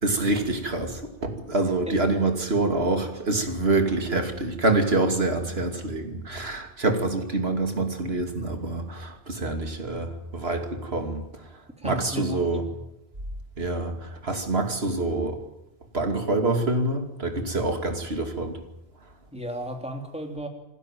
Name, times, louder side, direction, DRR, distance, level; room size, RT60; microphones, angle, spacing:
voice 1, 0.0-11.2 11.8-12.6 13.6-15.4 15.9-18.6, right 2 dB, 80° right, 5 dB, 2.9 m, -26 dB
voice 2, 11.8-12.8 19.3-20.5, equal, 5° right, 3 dB, 3.2 m, -35 dB
27.0 x 12.5 x 9.3 m, 0.87 s
omnidirectional pair, 1.0 m